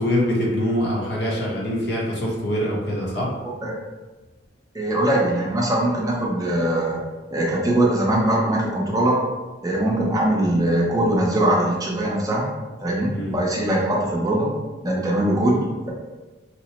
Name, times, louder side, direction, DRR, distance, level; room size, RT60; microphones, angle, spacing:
voice 1, 0.0-3.3 13.1-13.3, equal, 60° left, -3 dB, 0.8 m, -24 dB
voice 2, 4.7-7.0 7.3-9.2 9.6-12.5 12.8-14.5 14.8-15.6, right 1 dB, 20° right, -4 dB, 0.5 m, -21 dB
2.9 x 2.0 x 4.1 m, 1.2 s
head